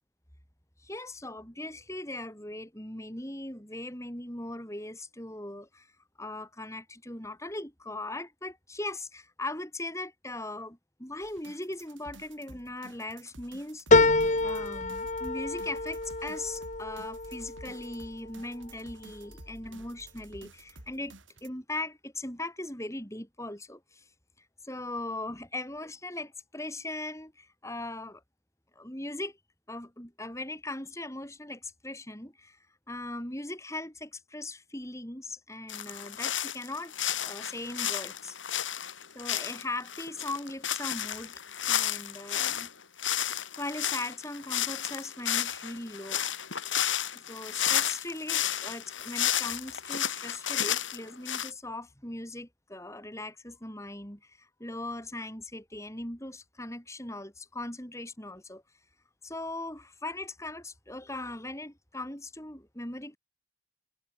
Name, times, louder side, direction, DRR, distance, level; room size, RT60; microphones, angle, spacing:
voice 1, 0.8-5.9 6.2-24.0 24.6-28.2 28.8-29.4 29.7-32.6 32.9-38.6 39.1-41.3 41.7-42.7 43.6-46.3 47.1-58.6 59.2-63.2, left 2 dB, 15° left, 6.1 m, -39 dB
sound 1, 11.2-21.5, right 2 dB, 80° right, 6.7 m, -52 dB
sound 2, 13.9-18.7 19.2-19.9 20.2-20.3, left 2 dB, 40° left, 2.4 m, -27 dB
sound 3, 35.7-42.7 43.0-51.5, left 10 dB, 80° left, 5.4 m, -32 dB
head